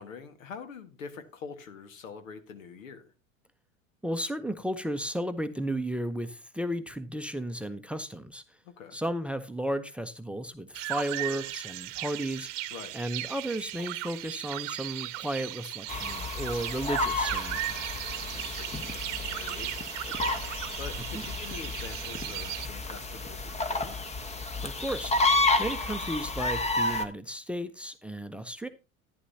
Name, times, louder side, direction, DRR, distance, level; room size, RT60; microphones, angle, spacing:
voice 1, 0.0-3.0 8.6-9.0 12.7-12.9 18.1-24.2, left 6 dB, 80° left, 1.7 m, -45 dB
voice 2, 4.0-8.4 8.9-12.5 12.9-18.0 24.6-25.1 25.6-28.7, right 1 dB, 5° right, 0.7 m, -34 dB
sound 1, 10.7-22.7, right 17 dB, 65° right, 0.9 m, -37 dB
sound 2, 15.9-27.0, left 2 dB, 15° left, 1.1 m, -31 dB
11.0 x 10.5 x 2.8 m
hypercardioid pair, 85°, 39 cm